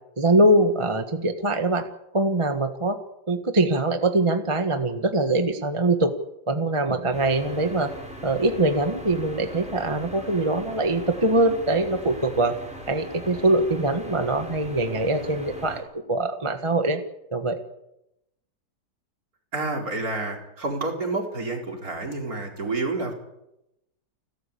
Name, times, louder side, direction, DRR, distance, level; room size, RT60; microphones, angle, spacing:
voice 1, 0.2-1.9 2.1-3.0 3.3-6.1 6.5-7.9 8.2-12.6 12.9-17.0 17.3-17.6, right 2 dB, 20° right, 7 dB, 1.3 m, -23 dB
sound 1, 7.1-15.8, equal, 5° right, 6.2 m, -40 dB
voice 2, 19.5-23.1, right 3 dB, 55° right, 2 dB, 4.9 m, -29 dB
30.0 x 13.0 x 8.5 m, 0.86 s
omnidirectional pair, 1.8 m